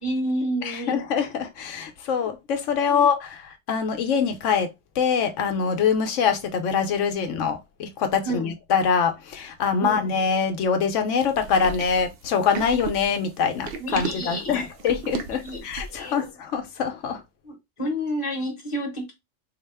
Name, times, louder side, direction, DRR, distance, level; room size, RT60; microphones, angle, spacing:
voice 1, 0.0-1.0 2.9-3.0 8.2-8.5 9.8-10.0 13.8-14.7 15.4-16.2 17.4-19.1, equal, 25° left, 1.1 m, -30 dB
voice 2, 0.6-4.7 5.0-17.2, left 6 dB, 90° left, 1.0 m, -24 dB
sound 1, 11.3-16.1, right 4 dB, 60° right, 0.8 m, -34 dB
4.2 x 2.2 x 3.3 m
omnidirectional pair, 1.2 m